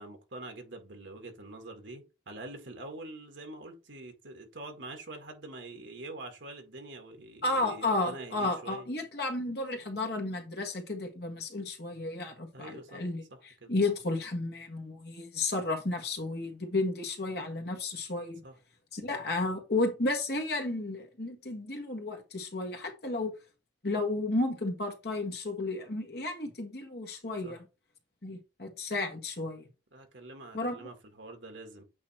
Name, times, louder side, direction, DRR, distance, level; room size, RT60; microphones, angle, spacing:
voice 1, 0.0-8.9 12.5-13.0 13.3-13.7 18.4-18.6 27.4-27.6 29.9-31.8, right 2 dB, 75° right, 1.9 m, -45 dB
voice 2, 7.4-18.4 18.9-23.3 23.8-27.6 28.2-29.7 30.5-30.8, left 2 dB, 55° left, 1.6 m, -33 dB
8.5 x 3.1 x 4.3 m
head